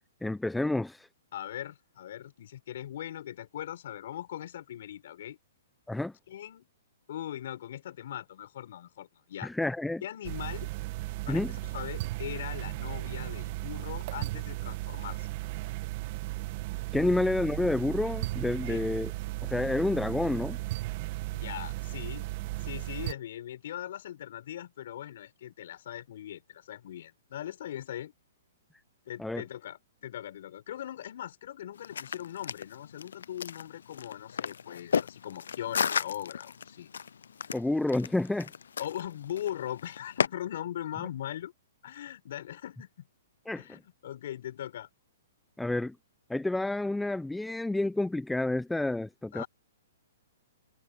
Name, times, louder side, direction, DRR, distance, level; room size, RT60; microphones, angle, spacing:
voice 1, 0.2-1.1 5.9-6.1 9.4-10.0 11.3-11.5 16.9-19.1 19.4-20.6 29.2-29.4 37.5-38.5 43.5-43.6 45.6-45.9 46.3-49.4, left 2 dB, 5° left, 0.7 m, -29 dB
voice 2, 1.3-5.4 6.3-6.7 7.1-9.5 10.0-10.7 11.3-15.3 18.7-18.8 21.3-22.3 22.6-28.1 29.1-36.9 38.8-41.5 41.8-43.1 43.6-44.9 49.3-49.5, left 11 dB, 60° left, 5.9 m, -40 dB
sound 1, 10.2-23.1, right 19 dB, 40° right, 1.8 m, -36 dB
sound 2, 31.8-40.3, left 7 dB, 85° left, 0.6 m, -34 dB
hypercardioid pair, 145°, 0 cm